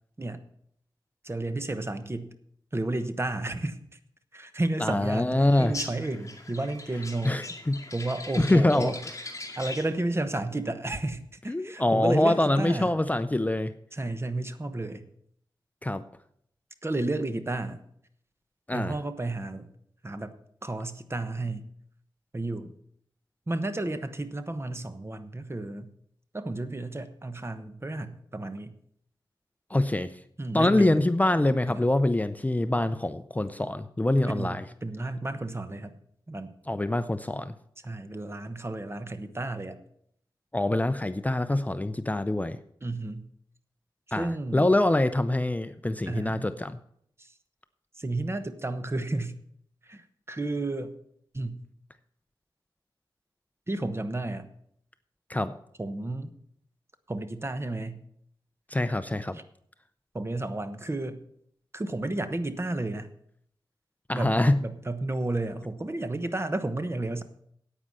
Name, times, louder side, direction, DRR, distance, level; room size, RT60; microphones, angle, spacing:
voice 1, 1.2-2.3 2.7-3.8 4.3-7.4 7.9-9.0 9.6-12.9 13.9-15.1 16.8-17.8 18.7-19.7 20.0-20.3 20.6-21.7 22.3-22.7 23.5-25.9 26.3-28.7 30.4-30.9 31.7-31.9 34.3-36.0 36.3-36.5 37.8-39.8 42.8-43.3 44.1-44.7 46.1-46.5 47.2-47.3 48.0-49.4 49.8-50.9 51.3-51.6 53.7-54.5 55.8-56.3 57.1-58.0 59.3-59.4 60.1-61.2 61.7-63.1 64.1-67.2, right 2 dB, 30° right, 10 dB, 1.0 m, -32 dB
voice 2, 4.8-5.7 7.2-7.8 8.4-8.9 11.5-13.7 15.8-16.0 18.7-19.0 29.7-30.1 30.5-34.6 36.7-37.5 40.5-42.6 44.1-46.8 55.3-55.5 58.7-59.4 64.1-64.6, left 1 dB, 20° left, 11 dB, 0.5 m, -25 dB
sound 1, 5.5-10.0, left 2 dB, 35° left, 2.2 m, -40 dB
9.6 x 8.8 x 6.3 m, 0.68 s
wide cardioid pair, 75°, 9 cm